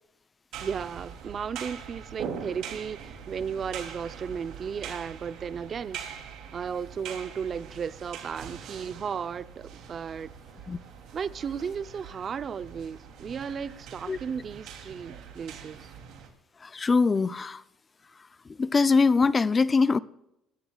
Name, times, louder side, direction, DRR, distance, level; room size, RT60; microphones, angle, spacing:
sound 1, 0.5-16.3, right 7 dB, 75° right, 2.9 m, -42 dB
voice 1, 0.6-6.0 6.5-10.3 11.1-15.9, right 7 dB, 45° right, 0.6 m, -35 dB
voice 2, 16.6-17.6 18.6-20.0, left 4 dB, 30° left, 0.5 m, -22 dB
25.5 x 13.0 x 2.4 m
supercardioid pair, 90°, 0 cm